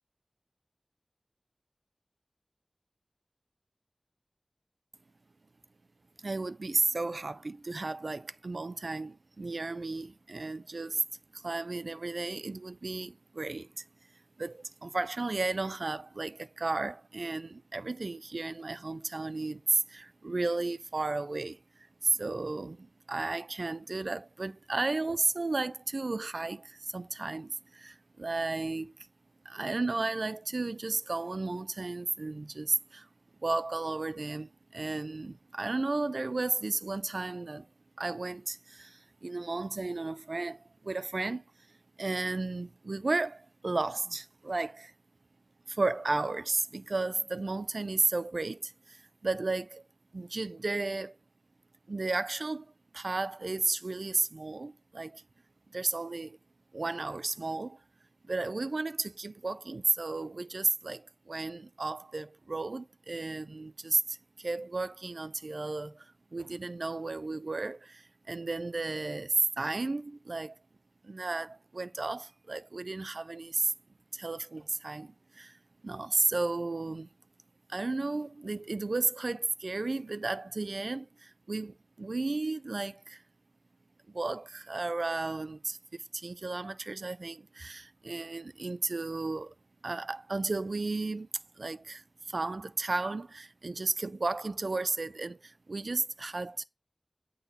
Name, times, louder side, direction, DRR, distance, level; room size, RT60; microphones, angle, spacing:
voice 1, 6.2-11.0 11.3-13.8 14.4-21.6 22.0-28.9 29.5-33.1 33.4-37.7 38.0-41.4 42.0-44.9 45.7-49.8 50.1-51.1 51.9-55.2 55.7-56.4 56.7-57.8 58.3-66.1 66.3-70.5 71.0-73.7 74.1-75.6 75.8-77.1 77.7-83.2 84.1-89.5 89.8-91.3 91.6-92.0 92.3-96.6, right 3 dB, 75° right, 0.4 m, -33 dB
9.2 x 3.9 x 4.1 m
wide cardioid pair, 50°, 0 cm